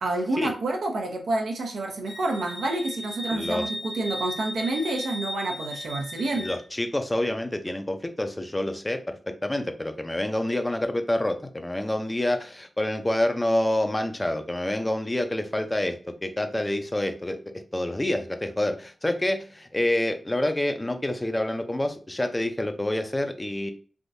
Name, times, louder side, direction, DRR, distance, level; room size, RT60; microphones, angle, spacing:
voice 1, 0.0-6.5, right 2 dB, 85° right, 2 dB, 0.7 m, -28 dB
Wind instrument woodwind instrument, 2.1-6.6, equal, 60° left, 1.1 m, -36 dB
voice 2, 3.3-3.7 6.3-17.4 17.7-23.7, left 1 dB, 20° left, 7 dB, 0.6 m, -27 dB
3.5 x 2.6 x 2.6 m, 0.40 s
cardioid pair, 45°, 0 cm